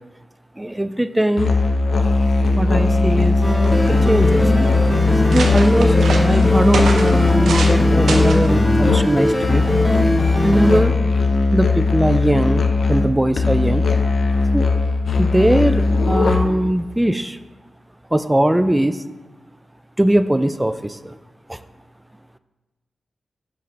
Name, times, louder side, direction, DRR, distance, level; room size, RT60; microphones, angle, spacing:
voice 1, 0.6-1.5 2.5-3.4 3.9-4.4 5.2-9.6 10.4-11.0 11.5-12.6 12.9-13.8 14.5-14.7 15.2-17.4 18.1-19.0 20.0-21.2 21.5-21.6, right 1 dB, 15° right, 12 dB, 0.3 m, -20 dB
Musical instrument, 1.4-16.7, left 3 dB, 70° left, 0.5 m, -18 dB
sound 1, 3.2-3.3 3.5-4.1 4.7-4.8 5.1-7.8 8.1-8.5 9.3-9.5, right 3 dB, 90° right, 0.6 m, -27 dB
sound 2, 3.4-10.8, left 1 dB, 30° left, 1.2 m, -21 dB
5.5 x 5.3 x 3.3 m, 1.2 s
cardioid pair, 55°, 0 cm